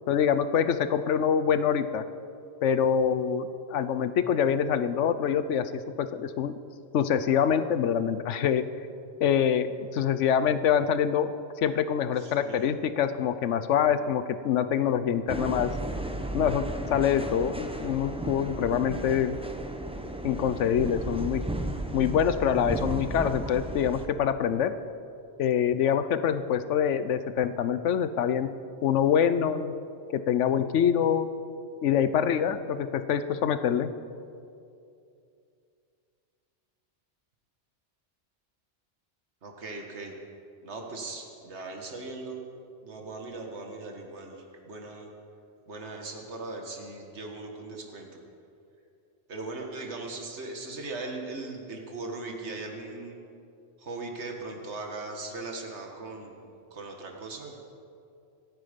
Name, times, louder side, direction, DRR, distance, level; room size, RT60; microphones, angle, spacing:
voice 1, 0.1-2.0 2.6-6.5 6.9-8.6 9.2-11.3 11.6-15.7 16.3-16.6 16.9-19.4 20.2-21.4 21.9-24.7 25.4-28.5 28.8-29.7 30.1-31.3 31.8-33.9, left 8 dB, 90° left, 12 dB, 1.0 m, -25 dB
voice 2, 12.2-12.7 39.4-40.1 40.6-42.4 42.8-45.1 45.7-48.2 49.3-53.2 53.8-57.6, right 3 dB, 70° right, 2 dB, 2.0 m, -39 dB
sound 1, 15.3-24.1, right 1 dB, 5° right, 0.7 m, -34 dB
26.5 x 9.3 x 5.2 m, 2.5 s
omnidirectional pair, 1.2 m